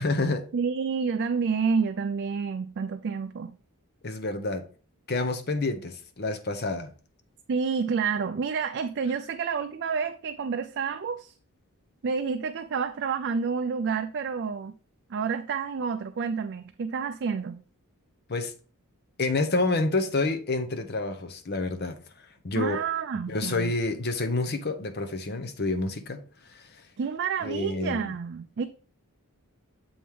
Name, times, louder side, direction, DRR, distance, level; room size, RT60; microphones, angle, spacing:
voice 1, 0.0-0.4 4.0-4.6 5.1-6.9 18.3-18.5 19.2-22.0 22.4-22.8 23.3-26.2 26.5-26.6 27.4-28.1, left 2 dB, 45° left, 0.8 m, -28 dB
voice 2, 0.5-3.5 7.5-11.3 12.0-14.7 15.1-17.6 22.6-23.7 27.0-28.7, right 5 dB, 50° right, 0.4 m, -29 dB
7.1 x 3.6 x 4.6 m
head